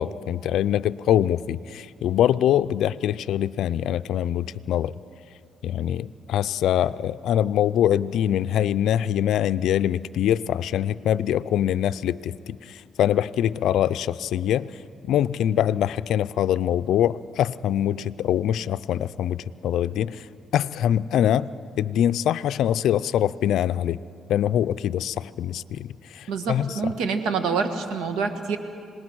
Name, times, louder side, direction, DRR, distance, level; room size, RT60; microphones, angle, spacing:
voice 1, 0.0-4.9 5.6-14.7 15.0-20.3 20.5-21.5 21.8-24.0 24.3-26.8, left 11 dB, 80° left, 14 dB, 0.4 m, -24 dB
voice 2, 26.3-28.6, right 5 dB, 85° right, 8 dB, 1.6 m, -26 dB
26.5 x 19.5 x 6.2 m, 2.4 s
cardioid pair, 90°, 0 cm